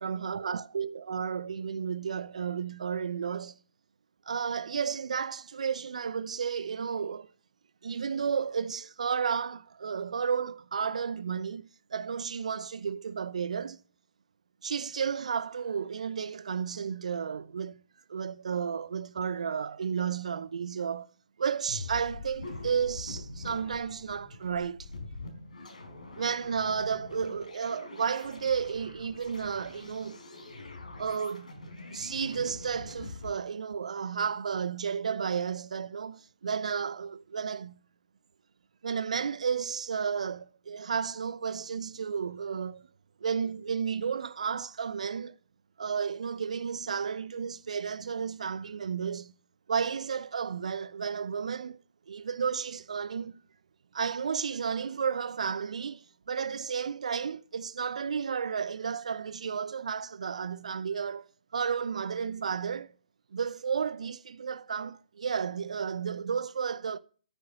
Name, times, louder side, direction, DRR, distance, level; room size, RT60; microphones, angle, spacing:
voice 1, 0.0-3.6 4.3-7.3 7.8-13.8 14.6-17.8 18.1-21.1 21.4-24.9 26.2-30.2 31.0-31.5 31.9-37.8 38.8-42.9 43.2-45.4 45.8-49.3 49.7-51.8 52.1-53.3 53.9-61.3 61.5-62.9 63.3-67.0, right 6 dB, 65° right, 0.7 m, -32 dB
sound 1, 21.7-33.3, left 2 dB, 80° left, 4.5 m, -44 dB
14.0 x 9.6 x 6.5 m
figure-of-eight pair, 130°, 4 cm